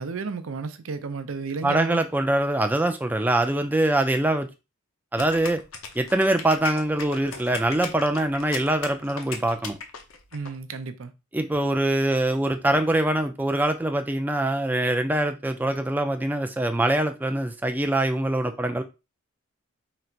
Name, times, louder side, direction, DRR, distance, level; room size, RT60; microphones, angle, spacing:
voice 1, 0.0-2.0 10.3-11.1, right 4 dB, 75° right, 0.6 m, -32 dB
voice 2, 1.6-4.5 5.1-5.6 6.0-9.8 11.3-18.8, right 1 dB, 10° right, 0.3 m, -23 dB
sound 1, 5.2-10.5, left 5 dB, 75° left, 0.8 m, -37 dB
3.9 x 2.5 x 4.4 m
head